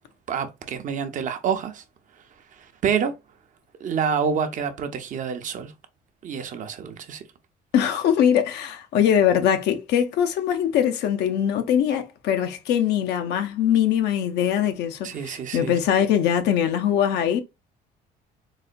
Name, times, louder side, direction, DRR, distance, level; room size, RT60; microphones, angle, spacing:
voice 1, 0.3-1.8 2.8-3.1 3.8-5.7 6.2-7.2 15.0-15.7, right 7 dB, 50° right, 0.6 m, -27 dB
voice 2, 7.7-17.4, left 9 dB, 80° left, 0.6 m, -22 dB
4.1 x 2.1 x 2.5 m
cardioid pair, 110°, 17 cm